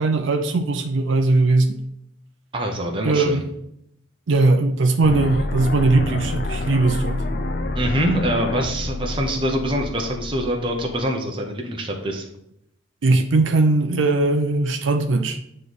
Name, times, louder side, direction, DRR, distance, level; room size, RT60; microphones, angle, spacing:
voice 1, 0.0-1.8 3.0-3.5 4.3-7.3 13.0-15.4, right 2 dB, 80° right, 5 dB, 0.5 m, -19 dB
voice 2, 2.5-3.4 7.7-12.2, equal, 25° right, 1 dB, 0.8 m, -24 dB
sound 1, 5.0-11.0, left 2 dB, 50° left, 0.5 m, -28 dB
9.0 x 3.2 x 4.0 m, 0.77 s
head